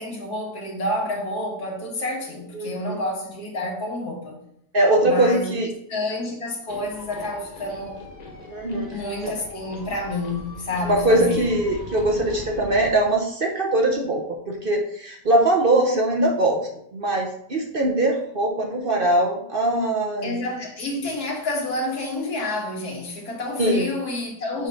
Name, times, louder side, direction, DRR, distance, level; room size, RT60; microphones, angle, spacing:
voice 1, 0.0-4.4 5.0-5.6 5.9-8.0 8.9-11.6 20.2-24.7, left 1 dB, 85° left, 0 dB, 2.0 m, -29 dB
voice 2, 2.5-3.0 4.7-5.7 8.5-9.0 9.2-9.3 10.8-16.6 16.9-20.4 23.6-23.9, right 1 dB, 45° right, 1 dB, 0.8 m, -21 dB
sound 1, 6.7-12.9, left 1 dB, 30° left, 1.1 m, -40 dB
6.7 x 3.2 x 5.6 m, 0.72 s
omnidirectional pair, 1.6 m